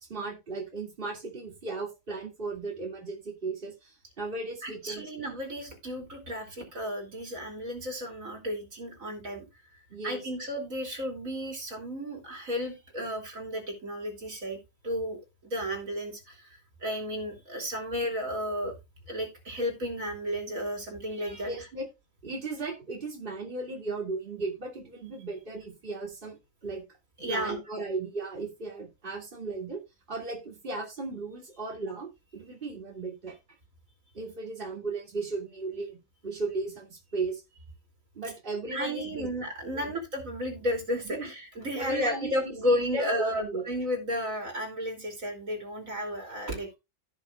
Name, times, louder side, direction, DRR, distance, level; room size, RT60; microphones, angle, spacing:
voice 1, 0.0-5.3 9.9-10.3 21.4-21.9 22.2-26.4 26.6-26.8 27.3-29.8 30.1-33.4 34.1-36.0 36.2-37.4 38.1-39.3 39.7-39.9 41.0-41.3 41.7-43.6, right 3 dB, 40° right, 0 dB, 2.9 m, -36 dB
voice 2, 4.6-9.5 10.0-14.6 14.8-15.2 15.4-18.7 19.1-21.5 27.2-27.6 38.7-46.8, equal, 75° right, 2 dB, 3.4 m, -33 dB
16.0 x 5.6 x 2.4 m, 0.24 s
omnidirectional pair, 1.4 m